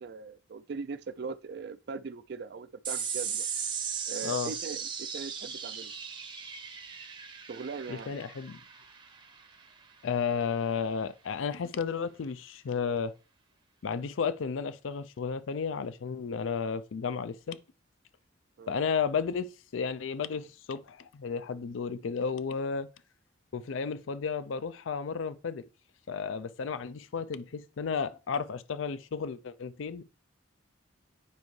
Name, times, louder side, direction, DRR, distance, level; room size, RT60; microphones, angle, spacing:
voice 1, 0.0-3.5 4.1-5.9 7.5-8.1 18.6-18.8, right 5 dB, 55° right, 0.4 m, -40 dB
sound 1, 2.8-9.6, right 7 dB, 25° right, 0.7 m, -37 dB
voice 2, 7.9-8.6 10.0-13.1 13.8-17.6 18.7-19.5 19.7-22.9 23.5-25.6 26.1-30.0, left 6 dB, 80° left, 0.4 m, -33 dB
9.4 x 5.3 x 3.1 m
head